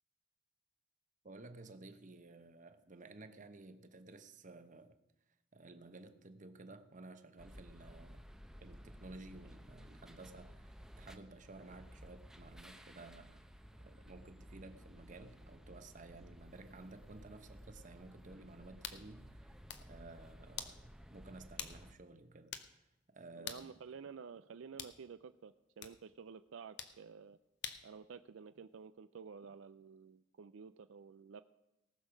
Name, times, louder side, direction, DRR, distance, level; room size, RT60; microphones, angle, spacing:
voice 1, 1.2-5.0 5.5-8.2 8.6-13.4 13.8-23.7, right 2 dB, 40° right, 0.9 m, -54 dB
sound 1, 7.4-21.9, equal, 5° right, 0.7 m, -56 dB
sound 2, 18.8-19.0 19.5-19.9 20.6-20.8 21.6-21.8 22.1-22.2 22.5-22.7 23.5-23.7 24.8-25.0 25.8-26.0 26.8-27.0 27.6-27.9, left 8 dB, 60° left, 1.0 m, -45 dB
voice 2, 23.3-27.4 27.8-31.4, right 6 dB, 75° right, 0.4 m, -51 dB
18.5 x 6.4 x 6.2 m
head